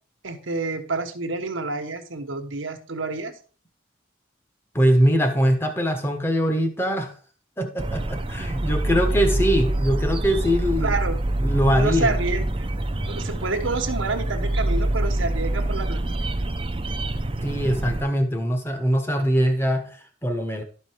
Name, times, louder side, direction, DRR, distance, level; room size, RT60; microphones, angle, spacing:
voice 1, 0.2-3.3 10.8-11.2 11.7-12.7 13.1-16.1, right 3 dB, 85° right, 7 dB, 1.3 m, -28 dB
voice 2, 4.7-7.1 7.6-11.0 11.4-12.1 17.4-20.6, equal, 10° left, 5 dB, 1.2 m, -22 dB
sound 1, 7.8-18.0, right 1 dB, 25° right, 0.7 m, -25 dB
12.0 x 5.5 x 4.6 m, 0.40 s
head